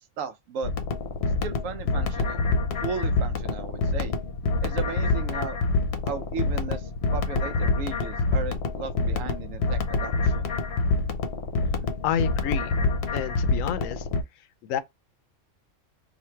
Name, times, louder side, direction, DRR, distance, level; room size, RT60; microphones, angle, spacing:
voice 1, 0.2-0.7 1.4-2.4 2.8-4.2 4.6-5.6 6.0-10.5, right 5 dB, 85° right, 1.0 m, -35 dB
sound 1, 0.6-14.2, left 3 dB, 60° left, 0.9 m, -26 dB
voice 2, 12.0-12.7 13.1-14.1 14.4-14.8, left 9 dB, 90° left, 1.0 m, -29 dB
3.0 x 2.5 x 4.3 m
omnidirectional pair, 1.3 m